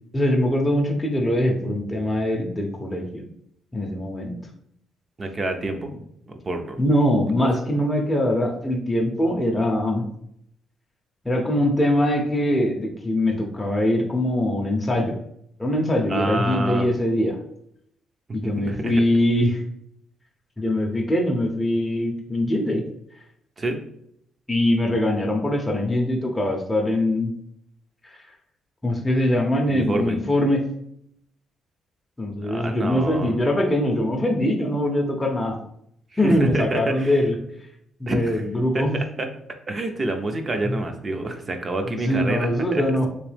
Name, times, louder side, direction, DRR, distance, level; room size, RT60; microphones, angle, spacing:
voice 1, 0.1-3.2 3.7-4.4 6.8-10.0 11.2-15.2 15.6-17.4 18.3-19.6 20.6-22.8 24.5-27.3 28.0-28.2 28.8-30.6 32.2-35.6 36.2-37.3 38.0-39.0 40.6-40.8 41.8-43.1, left 1 dB, 15° left, 0 dB, 0.6 m, -22 dB
voice 2, 5.2-5.9 6.4-6.8 16.1-16.9 18.4-18.9 23.6-23.8 29.7-30.2 32.4-33.4 36.2-37.2 38.1-38.4 38.7-39.3 39.7-42.8, right 2 dB, 35° right, 5 dB, 0.5 m, -27 dB
3.2 x 3.0 x 3.3 m, 0.72 s
cardioid pair, 90°, 0 cm